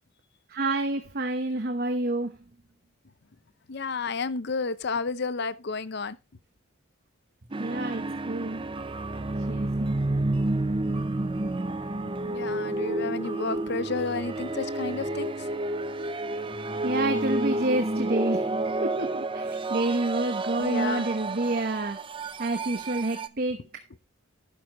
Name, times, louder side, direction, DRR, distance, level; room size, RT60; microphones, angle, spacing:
voice 1, 0.5-2.4 7.6-8.7 9.5-10.1 16.8-18.5 18.8-22.0 22.4-23.6, right 2 dB, 45° right, 1.0 m, -28 dB
voice 2, 3.7-6.2 12.2-15.5 20.6-21.1, left 4 dB, 55° left, 0.6 m, -31 dB
sound 1, 7.5-23.3, right 2 dB, 25° right, 0.6 m, -30 dB
12.0 x 9.0 x 3.0 m
head